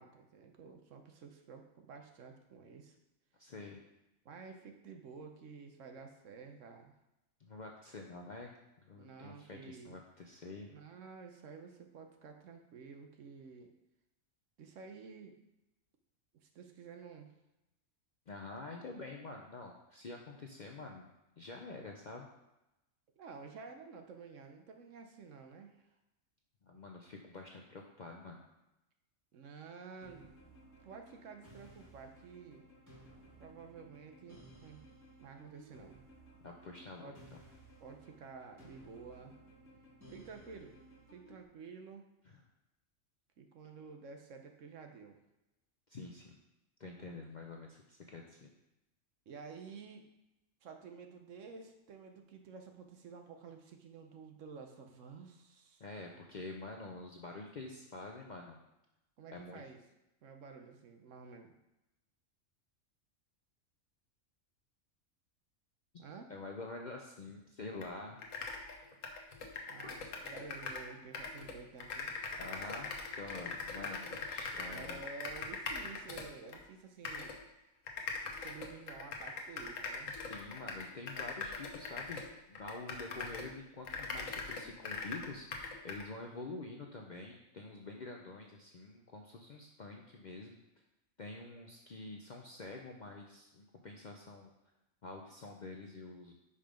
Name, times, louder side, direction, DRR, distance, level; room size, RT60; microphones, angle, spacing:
voice 1, 0.0-3.0 4.2-6.9 8.9-10.0 10.6-13.7 14.6-15.4 16.4-17.3 23.2-25.9 29.3-30.6 30.8-32.6 33.4-34.8 35.2-36.0 37.0-37.2 37.8-39.3 40.1-40.8 41.1-42.1 43.4-45.2 47.0-47.1 49.3-50.1 50.6-55.8 59.2-59.8 60.2-61.5 66.0-66.3 69.7-72.1 74.6-77.3 78.2-80.1, right 5 dB, 70° right, 5 dB, 1.1 m, -51 dB
voice 2, 3.4-3.8 7.4-8.5 8.8-10.7 18.3-21.1 21.4-22.3 26.6-28.4 36.4-37.4 42.3-42.4 45.9-46.4 46.8-48.5 55.8-58.6 59.3-59.6 66.3-68.2 72.4-75.0 80.3-90.6 91.2-94.5 95.0-96.3, left 3 dB, 50° left, 1 dB, 0.5 m, -47 dB
sound 1, 30.0-41.4, right 1 dB, 15° right, 2.4 m, -58 dB
sound 2, 67.8-67.9 68.2-70.9 71.1-76.6 77.0-77.4 77.9-83.5 83.8-86.1, left 4 dB, 70° left, 1.3 m, -42 dB
5.6 x 5.0 x 5.1 m, 0.92 s
omnidirectional pair, 1.4 m